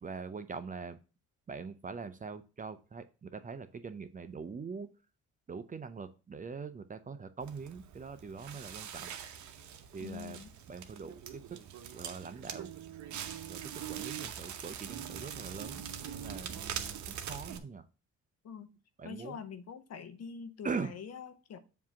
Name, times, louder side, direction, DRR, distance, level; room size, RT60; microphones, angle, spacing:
voice 1, 0.0-1.0 1.5-4.9 5.5-9.2 9.9-10.4 10.7-11.6 11.9-12.7 13.5-16.6 17.1-17.9 19.0-19.4 20.6-20.9, right 5 dB, 25° right, 0.5 m, -42 dB
Crackle, 7.4-17.6, right 9 dB, 70° right, 0.8 m, -43 dB
voice 2, 10.0-10.5 18.4-18.7 19.0-21.6, left 7 dB, 55° left, 0.8 m, -45 dB
7.3 x 2.8 x 5.9 m
cardioid pair, 90°, 30 cm